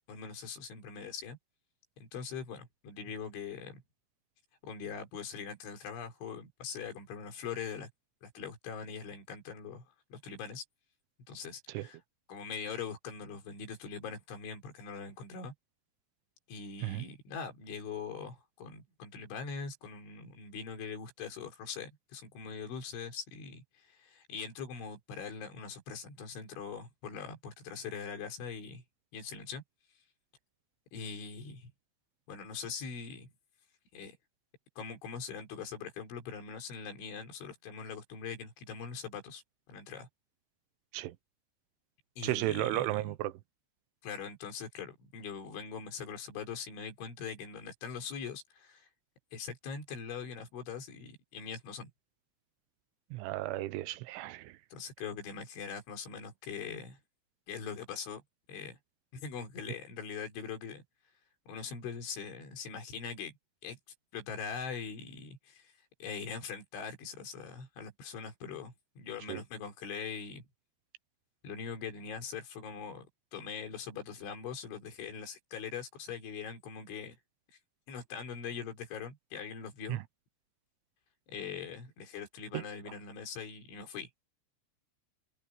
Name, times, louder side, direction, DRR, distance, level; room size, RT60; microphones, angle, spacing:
voice 1, 0.0-1.4 2.0-3.8 4.6-7.9 8.2-10.6 11.3-12.0 12.3-15.5 16.5-28.8 29.1-29.6 30.9-31.7 32.3-33.3 33.9-34.2 34.8-39.4 39.7-40.1 42.2-43.1 44.0-48.9 49.3-51.9 54.7-57.0 57.5-58.2 58.5-58.8 59.1-60.8 61.5-63.3 63.6-63.8 64.1-65.7 66.0-70.4 71.4-77.2 77.9-80.0 81.3-84.1, left 6 dB, 70° left, 6.6 m, -42 dB
voice 2, 42.2-43.3 53.1-54.5 69.3-69.4 79.9-80.0 82.5-82.6, right 16 dB, 85° right, 3.2 m, -34 dB
omnidirectional pair, 5.6 m